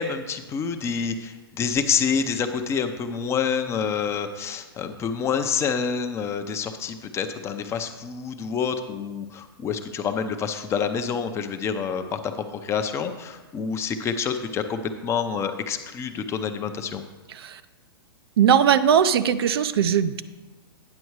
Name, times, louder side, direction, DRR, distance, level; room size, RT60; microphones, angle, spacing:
voice 1, 0.0-12.3 12.6-17.0, left 6 dB, 20° left, 7 dB, 0.6 m, -27 dB
voice 2, 17.3-17.6 18.4-20.2, right 8 dB, 70° right, 12 dB, 0.5 m, -19 dB
9.6 x 6.2 x 4.7 m, 1.2 s
hypercardioid pair, 130°, 13 cm